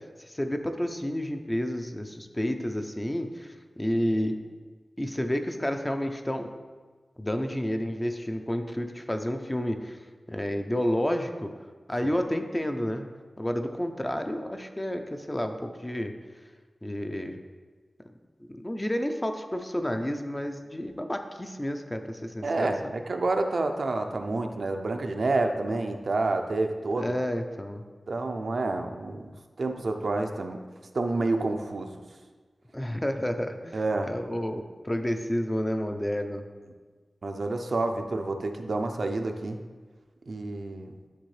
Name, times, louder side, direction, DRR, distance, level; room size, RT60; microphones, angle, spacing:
voice 1, 0.3-4.4 5.0-6.5 7.2-10.0 10.3-11.5 11.9-13.0 13.4-16.1 16.8-17.4 18.5-22.9 27.0-27.8 32.7-33.8 34.1-36.5, equal, 15° left, 6 dB, 0.4 m, -30 dB
voice 2, 22.4-27.2 28.1-29.3 29.6-30.7 30.9-32.0 33.7-34.1 37.2-39.6 40.3-41.0, right 2 dB, 70° right, 5 dB, 0.5 m, -29 dB
10.0 x 3.5 x 3.2 m, 1.4 s
wide cardioid pair, 95°, 0 cm